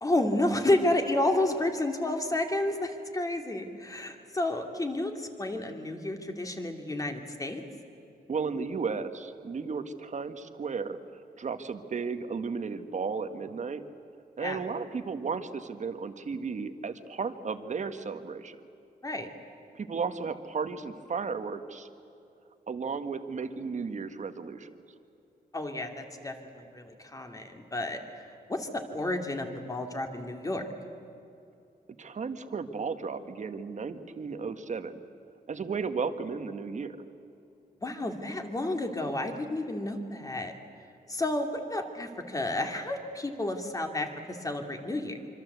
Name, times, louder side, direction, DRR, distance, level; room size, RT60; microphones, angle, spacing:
voice 1, 0.0-7.6 14.4-14.6 19.0-19.3 25.5-28.2 28.5-30.6 37.8-40.5 41.1-45.2, left 1 dB, 20° left, 4 dB, 2.7 m, -31 dB
voice 2, 8.3-11.0 11.4-13.8 14.4-18.6 19.7-21.9 22.7-24.7 32.0-35.0 35.5-37.0, right 5 dB, 50° right, 9 dB, 1.5 m, -34 dB
25.5 x 25.5 x 8.2 m, 2.7 s
wide cardioid pair, 135°, 16 cm